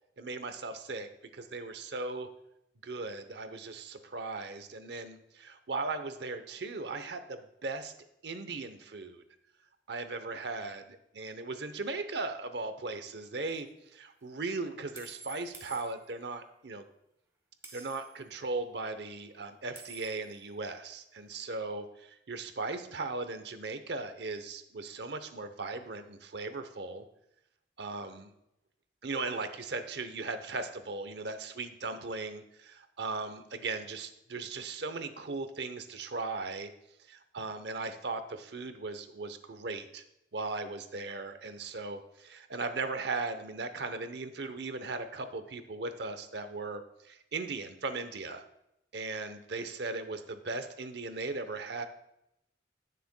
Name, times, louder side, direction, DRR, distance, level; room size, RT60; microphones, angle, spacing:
voice 1, 0.2-2.3 2.8-7.9 8.2-9.2 9.9-10.8 11.1-13.7 13.9-16.9 17.7-27.0 27.8-28.3 29.0-36.7 37.1-40.0 40.3-48.4 48.9-51.8, right 3 dB, 70° right, 9 dB, 0.8 m, -38 dB
sound 1, 13.4-13.6 14.9-16.4 17.6-18.2 19.7-20.4, right 3 dB, 15° right, 1.2 m, -49 dB
17.0 x 6.7 x 2.2 m, 0.82 s
head